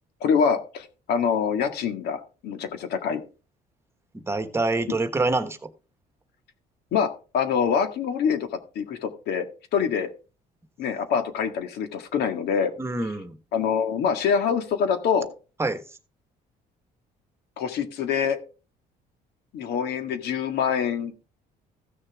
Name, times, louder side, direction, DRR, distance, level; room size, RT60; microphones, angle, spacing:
voice 1, 0.2-3.2 4.9-5.0 6.9-9.5 9.7-10.1 10.8-12.7 13.5-15.3 17.6-18.4 19.5-21.1, left 7 dB, 75° left, 8 dB, 1.8 m, -25 dB
voice 2, 4.1-5.7 12.8-13.4 15.6-15.8, right 2 dB, 15° right, 10 dB, 1.3 m, -26 dB
15.0 x 6.6 x 3.6 m, 0.34 s
cardioid pair, 110°, 17 cm